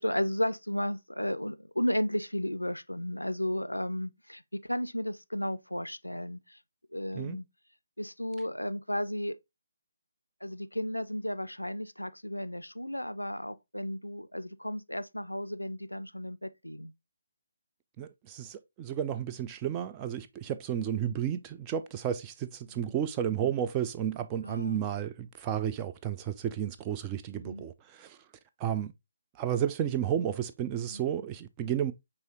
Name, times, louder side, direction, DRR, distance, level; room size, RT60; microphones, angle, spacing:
voice 1, 0.0-6.6 6.9-7.5 8.0-9.4 10.4-16.9 22.7-22.9 24.4-24.8 27.3-27.7 30.9-31.1, left 1 dB, 85° left, 0.4 m, -34 dB
voice 2, 18.0-28.2 28.6-28.9 29.4-31.9, right 9 dB, 20° right, 0.3 m, -32 dB
5.4 x 2.9 x 2.9 m
figure-of-eight pair, 145°, 0 cm